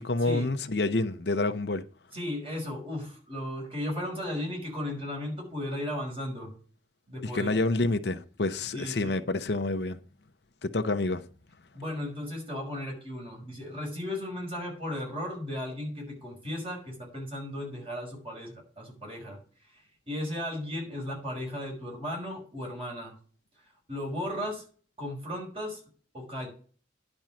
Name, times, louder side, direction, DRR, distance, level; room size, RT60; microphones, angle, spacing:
voice 1, 0.0-1.8 7.2-10.0 10.6-11.2, left 2 dB, 70° left, 0.8 m, -28 dB
voice 2, 2.1-6.5 7.1-7.6 8.7-9.2 11.7-19.4 19.7-23.2 23.9-24.6 25.0-25.8 26.1-26.5, left 1 dB, 30° right, 5.4 m, -35 dB
10.5 x 5.4 x 7.4 m
head